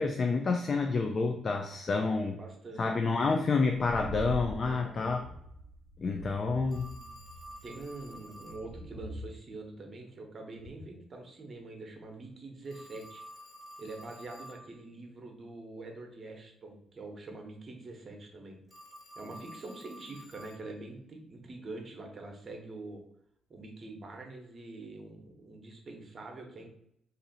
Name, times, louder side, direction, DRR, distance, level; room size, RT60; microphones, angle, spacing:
voice 1, 0.0-2.4 2.8-5.2 6.0-6.9, left 4 dB, 40° left, 4 dB, 0.3 m, -29 dB
voice 2, 1.9-2.9 4.6-5.3 7.6-13.2 13.8-18.6 19.2-23.0 23.5-26.7, right 2 dB, 40° right, 2 dB, 0.9 m, -45 dB
sound 1, 3.7-9.3, right 2 dB, 70° right, 0.4 m, -43 dB
Telephone, 6.7-8.7 12.7-14.7 18.7-20.7, equal, 20° left, 1.4 m, -50 dB
2.7 x 2.5 x 4.0 m, 0.76 s
cardioid pair, 90°, 0 cm